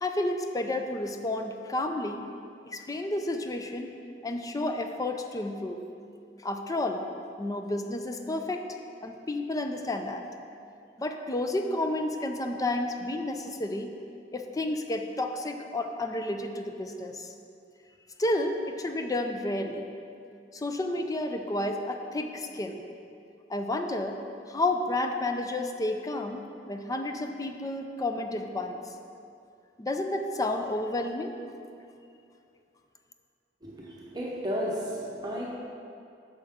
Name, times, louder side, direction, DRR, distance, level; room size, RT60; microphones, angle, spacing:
voice 1, 0.0-2.3 2.7-3.9 4.2-5.8 6.4-7.0 7.4-8.7 9.0-10.2 11.0-13.9 14.3-17.3 18.2-19.9 20.5-22.8 23.5-24.2 24.5-28.8 29.8-31.3, left 2 dB, 20° left, 5 dB, 0.4 m, -31 dB
voice 2, 33.6-35.6, equal, 25° right, -4 dB, 0.9 m, -33 dB
8.9 x 6.6 x 3.6 m, 2.5 s
head